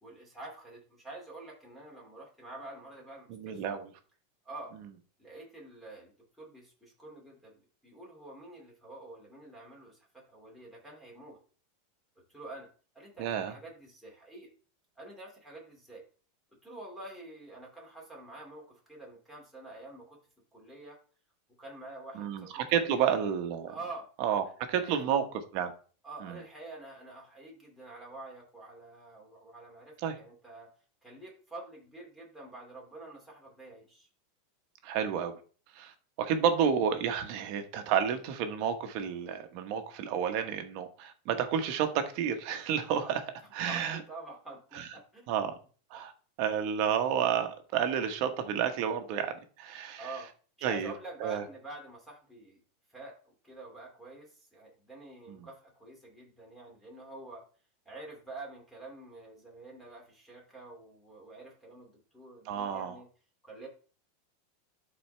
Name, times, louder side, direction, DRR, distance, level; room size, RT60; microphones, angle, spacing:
voice 1, 0.0-3.8 4.4-4.7 5.2-10.0 10.3-11.4 12.3-12.7 12.9-14.5 15.0-16.0 16.6-20.2 20.5-21.0 21.6-23.3 23.7-24.1 24.7-25.0 26.0-30.7 31.0-34.1 43.4-45.3 45.9-46.0 50.0-50.3 50.6-52.6 52.9-57.4 57.9-63.1 63.4-63.7, right 2 dB, ahead, -1 dB, 2.5 m, -47 dB
voice 2, 3.3-3.9 13.2-13.6 22.1-23.7 24.2-25.7 26.2-26.4 30.0-30.1 34.8-35.4 35.7-43.2 43.5-44.0 44.7-44.9 45.3-45.5 45.9-46.1 46.4-49.3 49.6-50.1 50.6-50.9 51.2-51.4 55.3-55.5 62.5-63.0, right 8 dB, 45° right, 7 dB, 1.2 m, -30 dB
12.0 x 4.3 x 3.3 m, 0.39 s
supercardioid pair, 165°, 0 cm